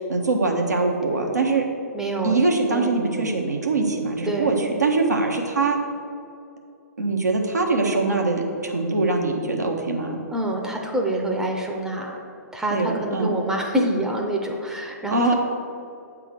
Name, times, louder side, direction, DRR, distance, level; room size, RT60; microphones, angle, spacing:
voice 1, 0.0-1.6 2.2-5.8 7.0-10.2 12.7-13.4 15.1-15.3, right 3 dB, 80° right, 0 dB, 1.1 m, -23 dB
voice 2, 1.9-2.4 2.7-3.0 4.2-4.7 10.3-12.2 12.5-15.3, right 1 dB, 5° right, 0 dB, 0.7 m, -26 dB
7.9 x 3.7 x 6.7 m, 2.5 s
figure-of-eight pair, 115°, 9 cm